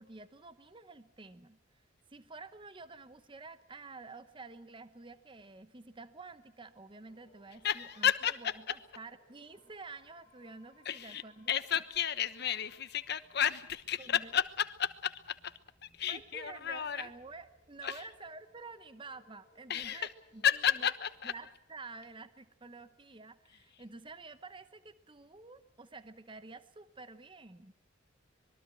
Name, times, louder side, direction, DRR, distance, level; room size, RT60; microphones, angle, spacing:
voice 1, 0.0-1.8 2.1-11.8 14.0-14.3 16.1-20.9 21.2-27.7, right 3 dB, 25° right, 12 dB, 0.9 m, -50 dB
sound 1, 7.0-21.3, left 2 dB, 20° left, 6.6 m, -68 dB
voice 2, 7.6-8.4 10.8-11.2 11.5-15.5 15.8-17.1 17.8-18.0 19.7-20.1 20.4-21.3, left 9 dB, 55° left, 12 dB, 1.1 m, -32 dB
25.0 x 22.0 x 6.3 m, 0.72 s
head